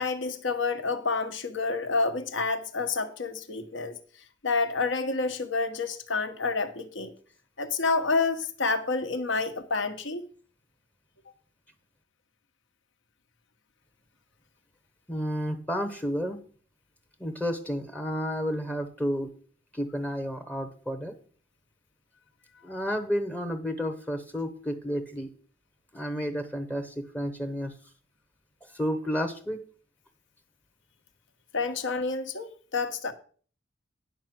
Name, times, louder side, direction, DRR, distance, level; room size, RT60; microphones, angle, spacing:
voice 1, 0.0-4.0 4.4-7.1 7.6-10.2 31.5-33.1, left 4 dB, 65° left, 1.2 m, -29 dB
voice 2, 15.1-16.4 17.2-19.3 19.7-21.1 22.6-25.3 25.9-27.7 28.7-29.6, equal, 5° left, 0.8 m, -31 dB
10.0 x 5.9 x 6.0 m
head